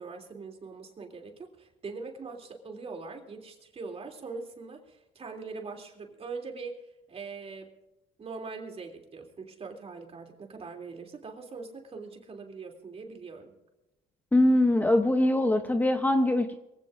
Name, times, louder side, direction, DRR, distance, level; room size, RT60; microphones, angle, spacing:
voice 1, 0.0-6.7 7.1-7.7 8.2-13.5, right 4 dB, 35° right, 2 dB, 3.0 m, -42 dB
voice 2, 14.3-16.5, left 1 dB, 10° left, 7 dB, 0.8 m, -22 dB
23.0 x 16.0 x 2.6 m, 0.97 s
cardioid pair, 110°, 17 cm